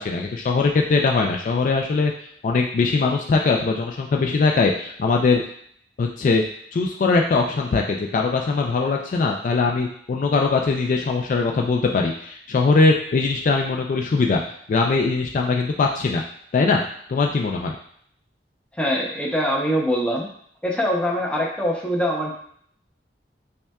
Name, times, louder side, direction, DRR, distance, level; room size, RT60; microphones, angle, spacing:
voice 1, 0.0-2.1 2.4-5.4 6.0-6.4 6.7-14.4 14.7-16.2 16.5-16.8 17.1-17.7, left 4 dB, 45° left, 1 dB, 0.3 m, -21 dB
voice 2, 18.8-20.3 20.6-22.3, equal, 5° left, -3 dB, 0.6 m, -23 dB
5.4 x 2.3 x 2.3 m, 0.64 s
head